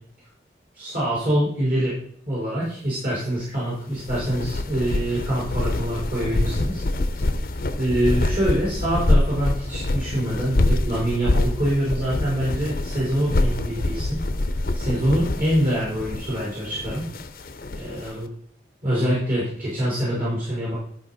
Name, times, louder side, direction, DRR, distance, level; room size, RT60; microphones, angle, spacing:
voice 1, 0.7-2.0 2.2-6.8 7.8-14.2 14.7-17.0 17.7-18.3 18.8-20.7, right 1 dB, 50° right, -8 dB, 4.3 m, -25 dB
sound 1, 3.9-18.1, left 2 dB, 50° left, 0.6 m, -25 dB
12.0 x 5.3 x 4.1 m, 0.63 s
head